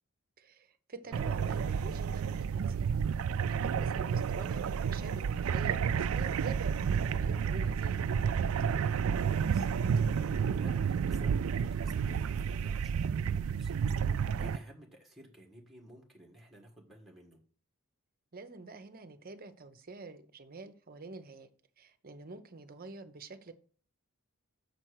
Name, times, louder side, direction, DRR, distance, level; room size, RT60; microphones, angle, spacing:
voice 1, 0.4-2.9 3.4-8.1 18.3-21.5 21.8-23.5, right 3 dB, 40° right, 0.8 m, -47 dB
sound 1, 1.1-14.6, right 7 dB, 65° right, 0.3 m, -31 dB
voice 2, 9.3-13.7 14.0-17.4, right 1 dB, ahead, 1.7 m, -55 dB
6.8 x 4.5 x 6.4 m
head